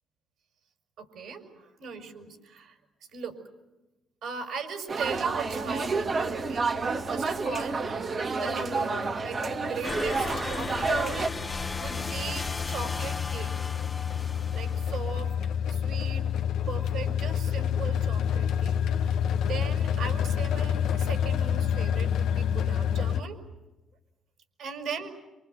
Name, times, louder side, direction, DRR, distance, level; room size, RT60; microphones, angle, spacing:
voice 1, 1.0-2.8 3.1-3.4 4.2-6.7 7.1-7.9 8.3-13.5 14.5-15.3 15.7-16.3 16.7-19.2 19.5-23.4 24.6-25.1, right 5 dB, 75° right, 5 dB, 5.2 m, -39 dB
sound 1, 4.9-11.3, right 4 dB, 40° right, 1.9 m, -29 dB
sound 2, 5.0-23.2, left 8 dB, 85° left, 1.2 m, -29 dB
sound 3, 9.8-15.3, left 3 dB, 25° left, 1.1 m, -36 dB
27.0 x 25.0 x 8.0 m, 1.0 s
cardioid pair, 90°, 0 cm